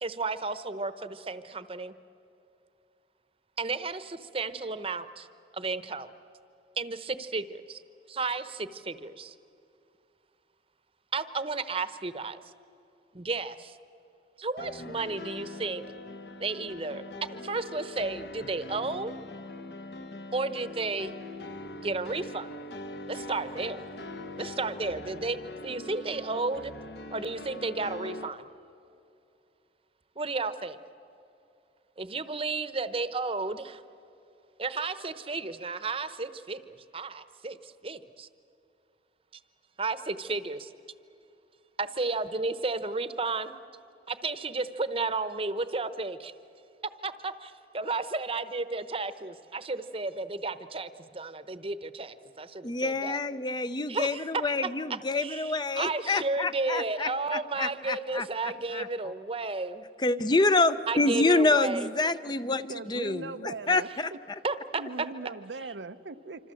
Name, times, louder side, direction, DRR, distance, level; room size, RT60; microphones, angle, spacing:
voice 1, 0.0-1.9 3.6-5.3 5.5-6.1 6.8-7.8 8.1-9.3 11.1-12.4 13.1-13.8 14.4-15.8 16.4-19.1 20.3-21.1 21.8-22.5 23.1-23.8 24.4-25.4 25.6-26.7 27.1-28.5 30.2-30.8 32.0-33.8 34.6-38.3 39.8-40.7 41.8-43.5 44.1-46.3 47.0-53.2 53.9-54.4 54.9-59.8 60.9-61.9 64.4-65.1, right 3 dB, 30° right, 0.9 m, -33 dB
sound 1, 14.6-28.3, left 2 dB, 65° left, 1.2 m, -42 dB
voice 2, 52.6-58.9 60.0-64.4, left 3 dB, 25° left, 0.6 m, -27 dB
voice 3, 62.7-63.9 64.8-66.5, right 3 dB, 80° right, 0.7 m, -40 dB
26.5 x 26.0 x 7.7 m
head